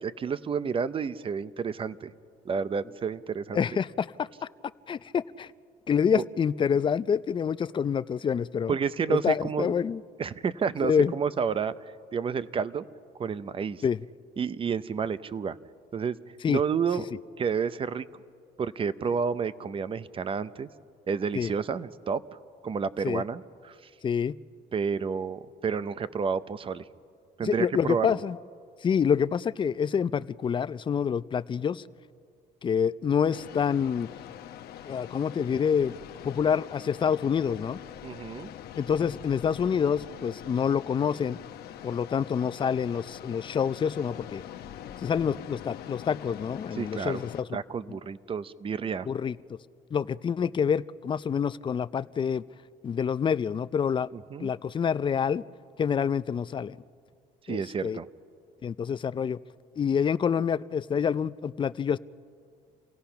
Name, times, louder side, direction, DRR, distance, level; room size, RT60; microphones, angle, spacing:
voice 1, 0.0-2.1 2.4-3.6 8.7-9.7 10.2-12.8 13.2-13.8 14.4-15.6 15.9-16.2 16.5-17.1 17.4-18.0 18.6-20.7 21.1-22.2 22.6-23.9 24.7-26.8 27.4-28.2 38.0-38.5 46.7-47.3 47.5-49.1 54.1-54.5 57.4-58.1, right 6 dB, 30° right, 15 dB, 0.7 m, -30 dB
voice 2, 3.5-4.3 4.9-5.5 5.9-8.7 9.1-10.0 10.8-11.1 13.8-14.0 16.4-16.6 21.3-21.5 23.0-23.2 24.0-24.3 27.4-28.4 28.8-31.8 32.6-34.1 34.9-35.9 36.2-37.8 38.8-41.4 41.8-44.4 45.0-47.3 49.1-49.3 49.9-52.4 52.8-54.1 54.4-55.4 55.8-56.8 57.5-58.0 58.6-59.4 59.8-62.0, left 7 dB, 30° left, 15 dB, 0.4 m, -27 dB
sound 1, 33.3-47.4, left 10 dB, 70° left, 0.9 m, -43 dB
28.0 x 17.0 x 5.8 m, 2.2 s
cardioid pair, 110°, 17 cm